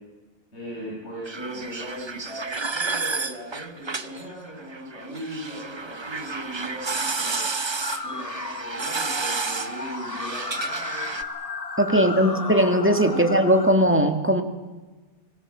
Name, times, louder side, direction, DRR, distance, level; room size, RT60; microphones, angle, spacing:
voice 1, 0.5-7.5 8.0-11.1 12.1-13.2, equal, 70° left, -7 dB, 7.3 m, -38 dB
sound 1, 1.2-11.2, right 4 dB, 25° right, 0.8 m, -31 dB
sound 2, 7.8-13.7, left 3 dB, 30° left, 1.4 m, -34 dB
voice 2, 11.8-14.4, equal, 10° right, 6 dB, 1.8 m, -19 dB
25.0 x 20.0 x 7.3 m, 1.3 s
omnidirectional pair, 1.2 m